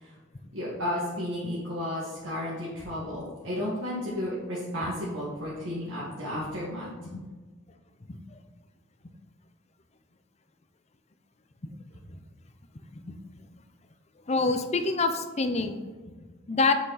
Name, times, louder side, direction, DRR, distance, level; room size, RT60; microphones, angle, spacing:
voice 1, 0.5-6.9, left 1 dB, 65° right, -8 dB, 2.0 m, -33 dB
voice 2, 14.3-15.8 16.5-16.7, left 3 dB, 30° left, 8 dB, 0.6 m, -26 dB
7.9 x 6.3 x 4.1 m, 1.3 s
head